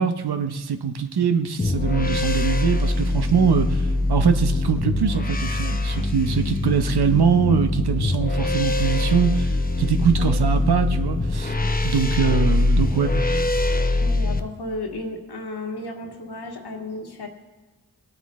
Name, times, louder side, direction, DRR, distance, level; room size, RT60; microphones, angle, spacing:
voice 1, 0.0-11.5 11.8-13.1, right 6 dB, 85° right, 8 dB, 0.9 m, -22 dB
sound 1, 1.6-14.4, left 2 dB, 25° left, 0.8 m, -23 dB
voice 2, 13.9-17.3, left 2 dB, 85° left, 2 dB, 1.8 m, -33 dB
21.5 x 8.9 x 3.2 m, 1.2 s
wide cardioid pair, 60°, 38 cm